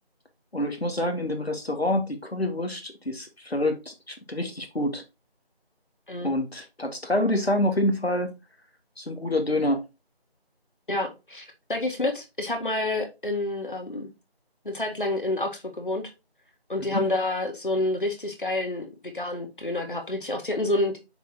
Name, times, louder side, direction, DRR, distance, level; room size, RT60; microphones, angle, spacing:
voice 1, 0.5-5.0 6.2-8.4 9.0-9.8 16.9-17.0, left 1 dB, 75° left, 1.9 m, -27 dB
voice 2, 10.9-14.1 14.7-16.1 16.7-21.0, left 2 dB, 55° left, 2.0 m, -28 dB
6.6 x 6.4 x 2.8 m
figure-of-eight pair, 170°, 31 cm